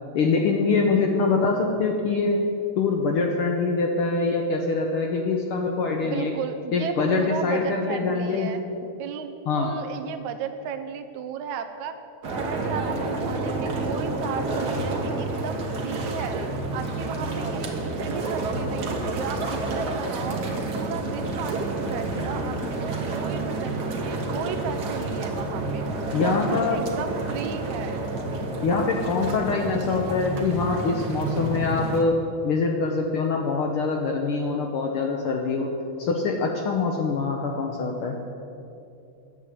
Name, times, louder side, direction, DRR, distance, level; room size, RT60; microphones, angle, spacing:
voice 1, 0.1-2.4 2.8-6.3 6.7-8.5 9.5-9.7 26.1-26.8 28.6-32.2 32.4-35.7 36.0-38.2, left 4 dB, 70° left, 2 dB, 1.3 m, -24 dB
voice 2, 6.0-12.0 12.4-16.4 16.7-20.4 20.8-25.8 26.2-28.0, right 7 dB, 80° right, 9 dB, 2.1 m, -35 dB
sound 1, 12.2-32.0, right 2 dB, 50° right, 1.3 m, -29 dB
11.0 x 7.5 x 8.3 m, 2.7 s
omnidirectional pair, 3.3 m